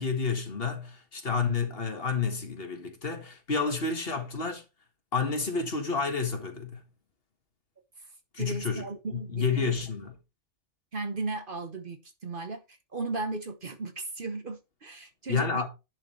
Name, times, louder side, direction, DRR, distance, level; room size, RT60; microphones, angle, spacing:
voice 1, 0.0-4.6 5.1-6.8 8.3-8.8 9.1-10.1 15.3-15.7, left 5 dB, 50° left, 1.7 m, -30 dB
voice 2, 8.4-9.8 10.9-15.6, right 3 dB, 45° right, 1.1 m, -36 dB
10.5 x 6.3 x 3.2 m
omnidirectional pair, 1.3 m